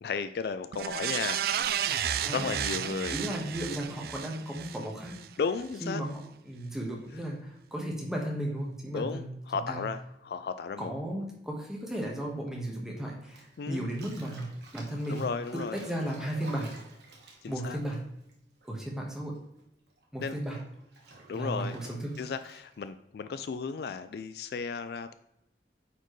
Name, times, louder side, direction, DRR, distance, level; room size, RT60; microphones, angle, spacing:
voice 1, 0.0-1.9 2.3-3.2 5.4-6.0 8.9-10.9 13.6-13.9 15.1-15.8 17.4-17.8 20.2-20.4 21.3-21.8 22.2-25.1, left 5 dB, 60° left, 11 dB, 0.3 m, -34 dB
sound 1, 0.7-5.3 5.7-5.8, right 9 dB, 55° right, 0.3 m, -32 dB
voice 2, 2.2-2.6 3.1-5.1 5.8-9.3 9.7-9.9 10.8-15.3 15.7-16.7 17.5-18.0 18.7-19.4 20.1-20.6 21.3-22.1, right 1 dB, 5° right, -2 dB, 1.2 m, -35 dB
Bathtub (filling or washing), 13.2-19.1 19.3-22.9, right 3 dB, 70° right, 1.3 m, -52 dB
9.0 x 4.4 x 3.1 m, 0.80 s
head